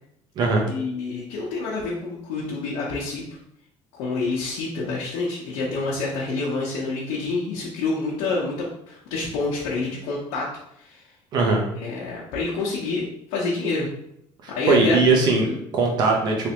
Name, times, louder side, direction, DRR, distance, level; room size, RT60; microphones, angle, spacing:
voice 1, 0.7-3.2 3.9-10.5 10.8-11.0 11.7-13.9 14.5-15.0 15.4-15.6, left 3 dB, 85° left, -5 dB, 0.9 m, -28 dB
voice 2, 11.3-11.7 14.4-15.5 15.7-16.5, right 3 dB, 45° right, 0 dB, 0.8 m, -20 dB
3.3 x 3.2 x 2.9 m, 0.75 s
cardioid pair, 160°, 10 cm